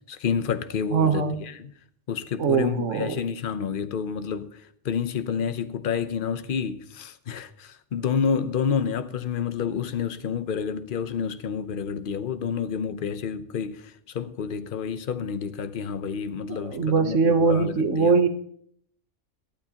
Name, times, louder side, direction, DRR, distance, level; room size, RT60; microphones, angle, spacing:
voice 1, 0.1-1.7 2.1-4.5 4.8-18.1, left 7 dB, 50° left, 0.9 m, -29 dB
voice 2, 0.9-1.3 2.4-3.2 16.5-18.3, right 5 dB, 80° right, 1.4 m, -22 dB
18.5 x 12.0 x 2.9 m
omnidirectional pair, 1.3 m